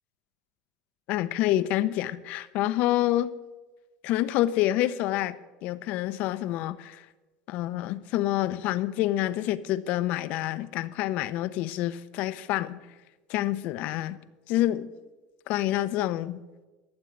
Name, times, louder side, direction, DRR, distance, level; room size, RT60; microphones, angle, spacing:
voice 1, 1.1-3.3 4.0-7.1 7.5-12.8 13.3-14.2 14.5-14.9 15.5-16.4, left 14 dB, 60° left, 14 dB, 0.7 m, -27 dB
13.0 x 7.3 x 8.0 m, 1.2 s
supercardioid pair, 120°, 3 cm